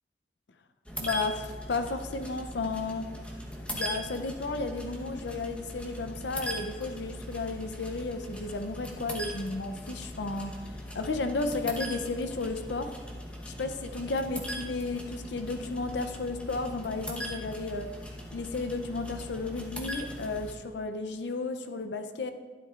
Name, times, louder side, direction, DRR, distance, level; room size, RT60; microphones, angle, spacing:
sound 1, 0.9-20.5, equal, 5° left, 1.0 m, -40 dB
voice 1, 1.0-3.1 3.7-12.9 13.5-17.9 18.3-22.3, left 3 dB, 75° left, 8 dB, 0.5 m, -33 dB
12.5 x 11.5 x 2.4 m, 1.4 s
head